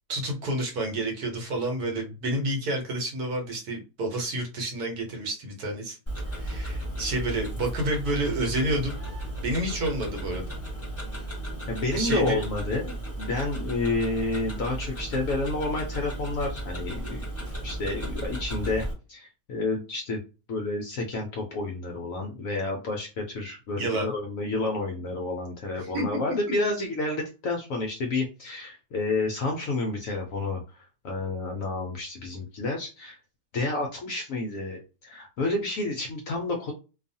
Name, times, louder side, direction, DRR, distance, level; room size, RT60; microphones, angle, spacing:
voice 1, 0.1-6.0 6.3-8.9 9.4-10.5 11.9-12.4 23.7-24.1 25.8-26.2, right 1 dB, 65° right, 2 dB, 1.2 m, -29 dB
Tick-tock, 6.1-18.9, right 1 dB, 10° left, 0.7 m, -34 dB
voice 2, 11.7-17.3 17.6-20.2 20.5-33.2 33.5-36.7, left 2 dB, 70° left, 1 dB, 0.8 m, -30 dB
2.6 x 2.3 x 2.6 m, 0.32 s
omnidirectional pair, 1.8 m